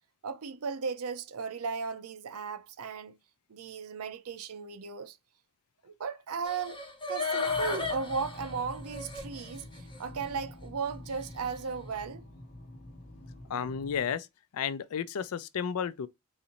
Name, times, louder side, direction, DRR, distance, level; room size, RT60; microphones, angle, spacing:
voice 1, 0.2-3.2 3.5-5.2 5.8-6.8 7.1-12.2, right 5 dB, 70° right, 0.6 m, -36 dB
sound 1, 6.4-9.5 9.9-10.0, left 4 dB, 20° left, 1.0 m, -34 dB
sound 2, 7.4-14.1, left 1 dB, 45° left, 1.0 m, -47 dB
voice 2, 13.5-14.3 14.5-16.1, left 7 dB, 70° left, 0.4 m, -32 dB
4.0 x 2.6 x 2.8 m
head